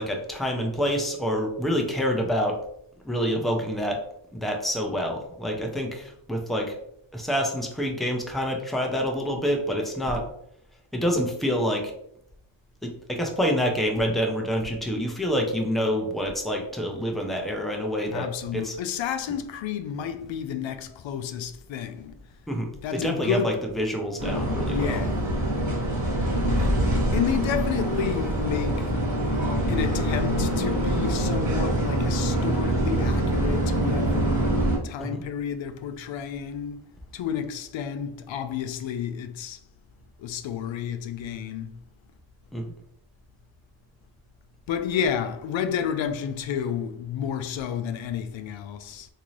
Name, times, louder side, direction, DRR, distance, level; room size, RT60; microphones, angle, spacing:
voice 1, 0.0-2.6 3.0-4.0 4.3-6.8 7.1-10.2 10.9-11.9 12.8-18.8 19.3-19.4 22.5-25.0 26.6-26.7 35.0-35.2 42.5-42.7, equal, ahead, 0.6 m, -27 dB
voice 2, 18.1-22.1 22.8-23.6 24.7-25.3 27.1-28.9 29.7-34.4 34.8-36.8 37.1-39.6 40.2-41.7 44.7-49.1, left 8 dB, 80° left, 0.5 m, -31 dB
sound 1, 24.2-34.8, right 1 dB, 40° right, 1.4 m, -24 dB
3.7 x 2.8 x 3.1 m
wide cardioid pair, 105°, 45 cm